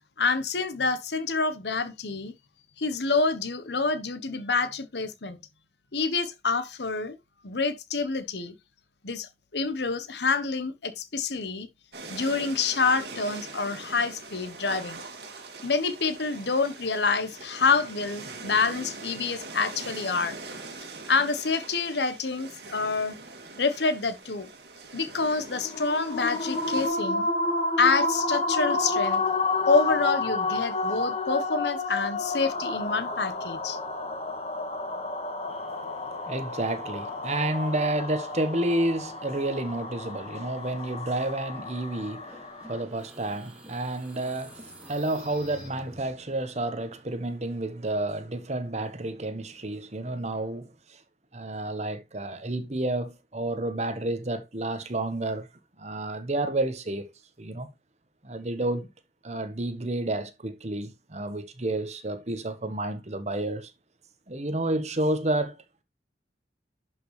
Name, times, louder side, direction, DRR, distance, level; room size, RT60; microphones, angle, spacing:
voice 1, 0.2-2.3 2.8-5.4 5.9-7.2 7.4-8.5 9.0-11.7 12.1-15.0 15.6-20.4 21.1-23.2 23.6-24.5 24.9-27.3 27.8-29.2 29.7-33.8, left 4 dB, 75° left, 1.1 m, -27 dB
sound 1, 11.9-26.9, right 3 dB, 70° right, 2.5 m, -42 dB
sound 2, 25.5-42.8, left 3 dB, 35° left, 1.6 m, -30 dB
voice 2, 35.5-51.0 51.3-55.5 55.8-57.1 57.4-57.7 58.2-58.9 59.2-63.7 64.3-65.8, right 1 dB, 40° right, 1.2 m, -30 dB
sound 3, 42.2-46.4, equal, 5° right, 2.6 m, -49 dB
11.0 x 5.4 x 3.2 m
head